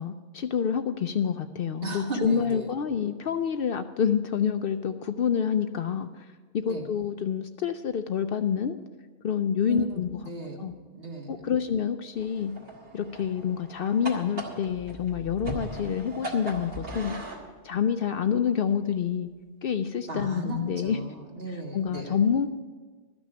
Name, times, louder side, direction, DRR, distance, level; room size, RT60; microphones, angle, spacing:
voice 1, 0.0-6.3 6.5-8.8 9.2-10.2 10.6-10.7 11.3-12.5 12.9-17.2 17.6-19.3 19.6-21.0 21.5-22.5, left 7 dB, 60° left, 9 dB, 0.7 m, -27 dB
voice 2, 1.8-2.7 6.7-6.9 9.7-9.9 10.2-11.5 20.1-22.2, right 2 dB, 55° right, 0 dB, 2.0 m, -35 dB
sound 1, 12.1-17.4, right 1 dB, 70° right, 2.3 m, -38 dB
13.0 x 6.2 x 8.8 m, 1.4 s
omnidirectional pair, 1.2 m